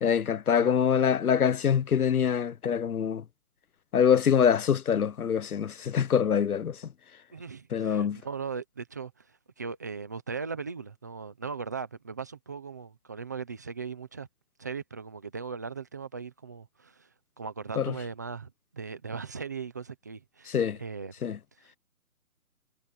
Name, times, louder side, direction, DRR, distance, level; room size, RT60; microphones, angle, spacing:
voice 1, 0.0-3.2 3.9-6.8 7.7-8.2 17.8-17.9 20.5-20.8 21.2-21.4, left 8 dB, 75° left, 0.9 m, -24 dB
voice 2, 7.3-14.3 14.6-17.1 17.4-21.1 21.6-21.7, right 5 dB, 10° right, 0.9 m, -38 dB
hypercardioid pair, 170°, 44 cm